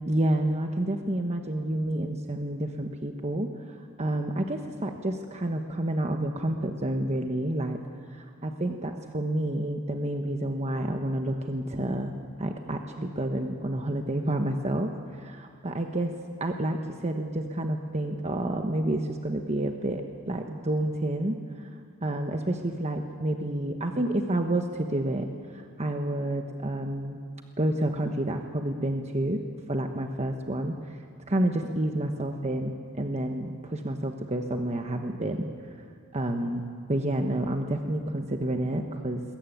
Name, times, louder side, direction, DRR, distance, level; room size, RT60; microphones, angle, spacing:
voice 1, 0.1-7.8 8.1-12.1 12.4-16.1 16.4-21.7 22.0-25.3 25.5-27.2 27.6-29.4 29.7-31.0 31.3-35.5 36.1-39.2, right 1 dB, 30° right, 4 dB, 1.1 m, -29 dB
21.5 x 21.0 x 9.3 m, 2.2 s
head